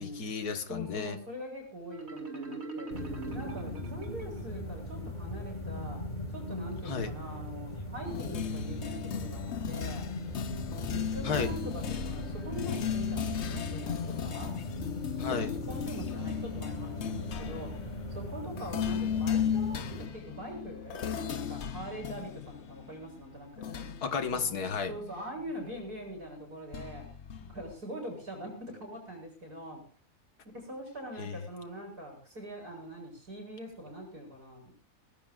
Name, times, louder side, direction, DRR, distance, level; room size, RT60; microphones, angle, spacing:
voice 1, 0.0-1.2 6.9-7.1 11.2-11.5 15.2-15.5 24.0-24.9 31.2-31.4, left 5 dB, 85° left, 8 dB, 2.0 m, -33 dB
voice 2, 0.7-3.0 3.3-6.0 6.3-10.1 10.8-14.5 15.2-17.7 18.1-23.9 24.9-27.0 27.4-29.8 30.4-34.7, right 1 dB, 85° right, 0 dB, 6.7 m, -43 dB
Marimba xylophone, 1.9-4.7, right 3 dB, 45° right, 2.8 m, -41 dB
sound 1, 2.9-20.1, left 1 dB, 30° left, 4.6 m, -39 dB
sound 2, 8.1-25.9 26.7-27.7, left 8 dB, 50° left, 1.0 m, -36 dB
25.5 x 17.0 x 2.5 m, 0.40 s
omnidirectional pair, 1.6 m